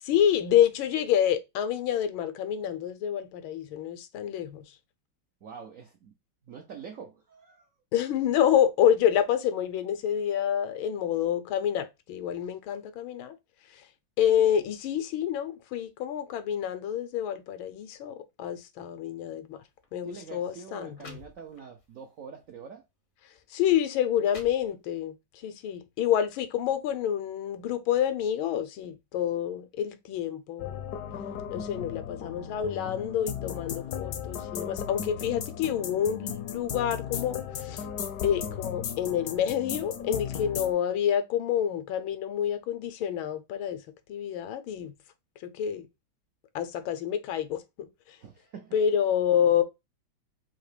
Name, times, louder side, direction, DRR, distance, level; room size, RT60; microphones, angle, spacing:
voice 1, 0.0-4.7 7.9-13.3 13.7-13.8 14.2-19.6 19.9-21.2 23.5-25.2 25.4-30.8 31.5-37.8 38.2-43.8 44.1-45.0 45.4-45.9 46.5-47.9 48.7-49.6, left 9 dB, 85° left, 1.5 m, -28 dB
voice 2, 5.4-6.1 6.4-7.7 20.0-22.8 48.2-48.7, right 6 dB, 75° right, 0.7 m, -45 dB
sound 1, 19.7-19.9 20.6-20.7 20.9-21.9 22.4-22.6 23.4-23.5 24.0-25.1, left 4 dB, 50° left, 0.6 m, -50 dB
sound 2, 30.6-40.7, left 8 dB, 65° left, 1.0 m, -36 dB
3.8 x 2.9 x 4.8 m
omnidirectional pair, 2.2 m